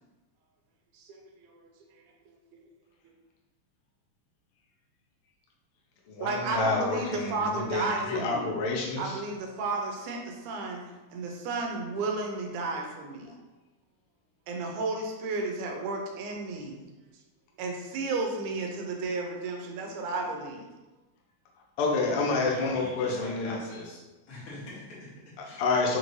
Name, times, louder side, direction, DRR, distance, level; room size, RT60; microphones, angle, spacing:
voice 1, 0.9-1.6 6.2-8.5 9.0-10.8 11.1-13.3 14.5-16.8 17.6-20.7, right 3 dB, 85° right, 1 dB, 2.1 m, -33 dB
voice 2, 6.1-9.2 21.8-23.6 25.6-26.0, left 3 dB, 90° left, -2 dB, 1.2 m, -28 dB
voice 3, 22.5-24.0 24.3-25.6, left 2 dB, 55° left, -6 dB, 1.8 m, -43 dB
5.7 x 3.1 x 2.6 m, 1.1 s
omnidirectional pair, 3.5 m